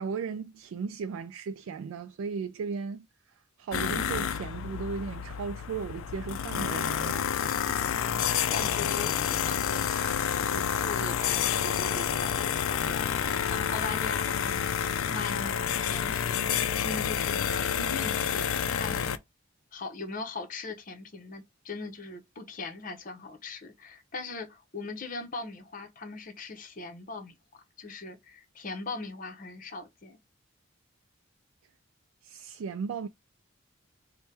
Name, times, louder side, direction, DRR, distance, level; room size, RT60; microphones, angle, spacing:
voice 1, 0.0-3.1 3.6-7.8 32.2-33.1, right 5 dB, 85° right, 0.3 m, -36 dB
sound 1, 3.7-19.2, left 8 dB, 85° left, 0.4 m, -29 dB
voice 2, 7.9-14.8 15.1-18.4 18.7-19.1 19.7-27.3 27.8-30.2, left 3 dB, 40° left, 0.7 m, -40 dB
4.3 x 2.2 x 3.3 m
head